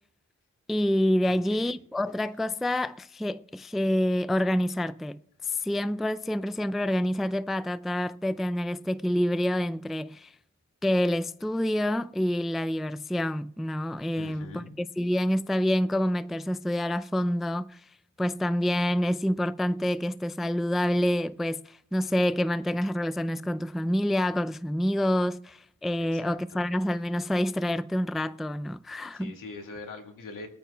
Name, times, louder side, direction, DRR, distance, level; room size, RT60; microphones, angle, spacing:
voice 1, 0.7-10.3 10.8-17.8 18.2-29.3, left 1 dB, ahead, 0.3 m, -27 dB
voice 2, 1.3-1.7 14.2-14.8 26.0-26.7 29.1-30.5, left 3 dB, 80° left, 2.2 m, -43 dB
23.5 x 9.2 x 2.3 m
cardioid pair, 70°, 32 cm